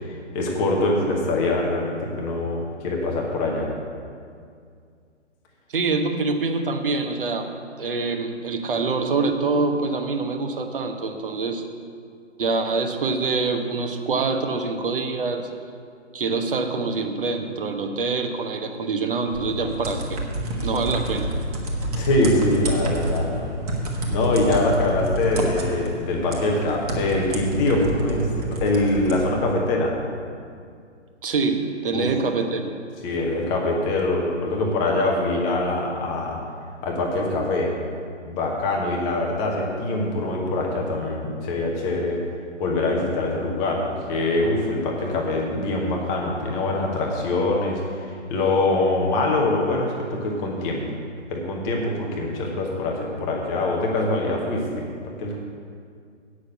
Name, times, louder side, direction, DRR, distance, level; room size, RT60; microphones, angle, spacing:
voice 1, 0.1-3.7 22.0-23.5 24.1-29.9 31.9-32.1 33.0-36.4 36.8-37.7 38.2-42.2 42.6-43.8 44.1-50.8 51.3-55.4, left 2 dB, 10° left, -1 dB, 0.7 m, -24 dB
voice 2, 5.7-7.5 7.8-11.6 12.4-15.5 16.1-20.2 20.6-21.3 31.2-32.8, right 3 dB, 45° right, 5 dB, 1.1 m, -25 dB
sound 1, 19.3-29.3, right 1 dB, 30° right, 1.4 m, -28 dB
8.5 x 6.4 x 8.3 m, 2.2 s
figure-of-eight pair, 135°, 36 cm